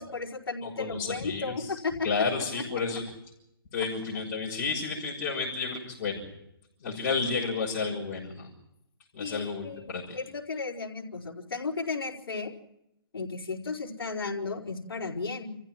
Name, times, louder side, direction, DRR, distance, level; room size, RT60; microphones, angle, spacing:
voice 1, 0.0-2.2 9.2-12.5 13.1-15.5, left 4 dB, 70° left, 0 dB, 4.6 m, -34 dB
voice 2, 0.6-1.7 2.0-3.1 3.7-6.2 6.8-8.5 9.1-10.2, left 4 dB, 40° left, -4 dB, 6.1 m, -31 dB
29.5 x 15.0 x 7.7 m, 0.82 s
hypercardioid pair, 145°, 13 cm